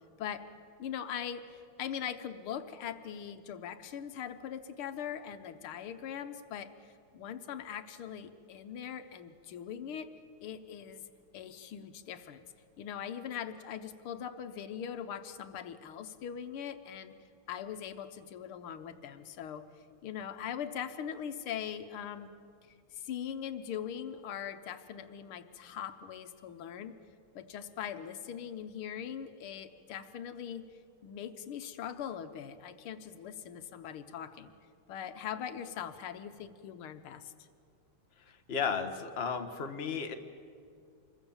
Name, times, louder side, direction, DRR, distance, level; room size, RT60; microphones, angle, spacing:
voice 1, 0.8-6.7 7.1-10.1 10.4-11.1 11.3-12.4 12.8-17.2 17.5-19.7 20.0-22.3 22.9-27.0 27.4-30.7 31.0-34.5 34.9-37.3, left 8 dB, 85° left, 9 dB, 1.9 m, -41 dB
voice 2, 38.5-40.1, left 6 dB, 35° left, 6 dB, 1.4 m, -33 dB
26.5 x 22.0 x 7.2 m, 2.3 s
omnidirectional pair, 2.4 m